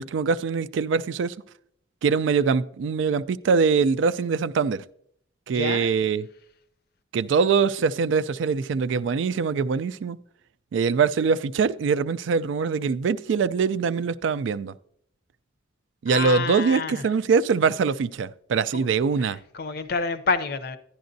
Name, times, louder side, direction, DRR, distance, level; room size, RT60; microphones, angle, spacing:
voice 1, 0.0-1.4 2.0-4.8 5.5-6.3 7.1-10.2 10.7-14.7 16.0-19.4, right 5 dB, 70° right, 0.3 m, -23 dB
voice 2, 5.5-5.9 16.1-17.0 18.7-18.8 19.2-20.8, left 4 dB, 50° left, 0.6 m, -28 dB
11.5 x 10.0 x 2.6 m
head